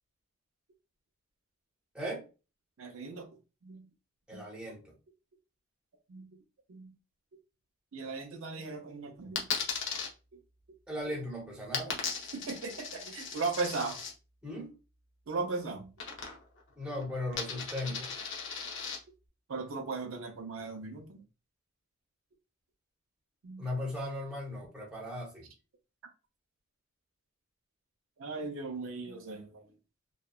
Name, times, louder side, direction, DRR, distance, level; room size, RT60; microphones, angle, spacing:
voice 1, 2.8-3.3 3.6-3.9 4.3-4.5 6.1-6.3 6.7-6.9 7.9-9.5 12.3-14.0 15.3-15.9 19.5-21.2 23.4-23.6 28.2-29.6, right 4 dB, 65° right, 0.5 m, -37 dB
voice 2, 4.3-4.9 10.9-12.0 14.4-14.7 16.8-18.1 23.6-25.5, left 1 dB, 5° right, 0.8 m, -37 dB
Coin (dropping), 9.4-10.1 11.7-14.1 16.0-16.6 16.9-19.0, left 5 dB, 60° left, 0.7 m, -37 dB
2.8 x 2.2 x 2.3 m
head